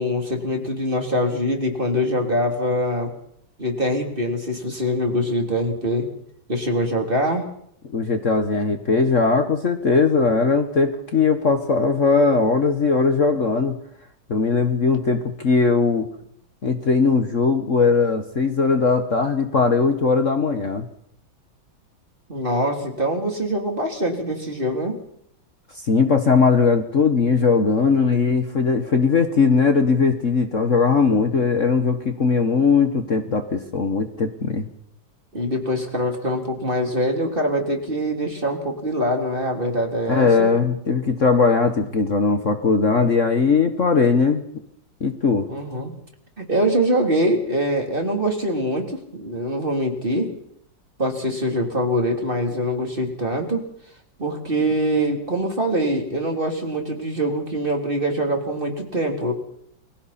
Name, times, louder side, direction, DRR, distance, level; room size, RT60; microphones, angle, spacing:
voice 1, 0.0-3.1 3.6-6.1 6.5-7.4 22.3-25.0 35.3-40.5 45.5-45.9 46.4-50.3 51.0-53.7 54.2-59.3, equal, 25° right, 2 dB, 3.5 m, -23 dB
voice 2, 7.9-13.8 14.3-16.1 16.6-20.9 25.8-34.7 40.1-44.4 45.0-45.5, left 4 dB, 45° left, 6 dB, 1.6 m, -19 dB
29.5 x 23.0 x 4.3 m, 0.71 s
omnidirectional pair, 2.0 m